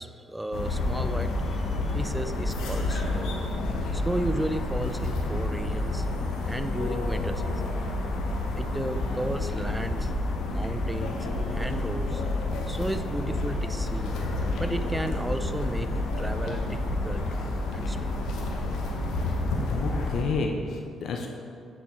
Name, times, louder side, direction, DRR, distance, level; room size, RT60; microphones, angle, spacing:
voice 1, 0.0-3.3 3.9-6.1 6.5-7.8 8.5-10.1 10.5-11.2 11.5-12.2 12.7-14.2 14.6-15.9 16.2-17.2 17.7-18.1, right 1 dB, 10° right, 9 dB, 0.4 m, -34 dB
sound 1, 0.5-20.2, left 2 dB, 85° left, 0.9 m, -29 dB
voice 2, 19.7-21.3, left 4 dB, 70° left, 2 dB, 0.5 m, -30 dB
8.1 x 4.3 x 4.2 m, 2.4 s
cardioid pair, 90°, 0 cm